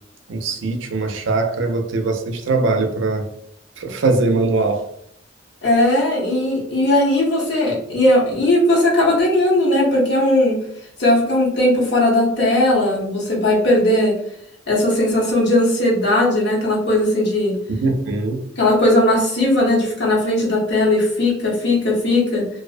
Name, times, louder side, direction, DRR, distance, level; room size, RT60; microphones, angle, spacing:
voice 1, 0.3-3.3 3.8-4.9 17.8-18.4, right 3 dB, 75° right, 5 dB, 0.4 m, -21 dB
voice 2, 5.6-10.6 11.0-14.2 14.7-17.6 18.6-22.5, left 1 dB, 60° left, -3 dB, 0.8 m, -17 dB
2.5 x 2.0 x 2.4 m, 0.72 s
head